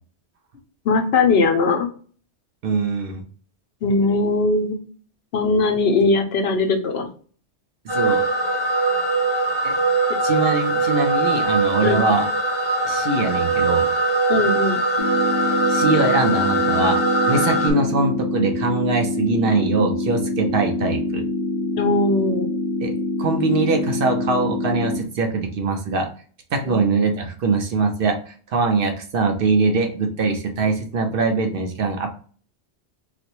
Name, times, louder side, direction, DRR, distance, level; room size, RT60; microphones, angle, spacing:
voice 1, 0.8-1.9 3.8-4.8 5.3-7.1 11.8-12.0 14.3-14.8 21.8-22.5 26.6-26.8, left 3 dB, 70° left, 6 dB, 0.8 m, -20 dB
voice 2, 2.6-3.2 7.8-8.2 9.6-9.7 10.2-12.3 12.8-13.9 15.7-17.0 17.3-21.2 22.8-22.9 23.2-26.1 26.5-32.1, right 3 dB, 60° right, 4 dB, 0.7 m, -22 dB
sound 1, 7.9-17.7, right 2 dB, 10° right, 1.0 m, -21 dB
sound 2, 15.0-25.0, left 2 dB, 50° left, 0.4 m, -25 dB
4.0 x 2.1 x 2.9 m, 0.43 s
omnidirectional pair, 1.2 m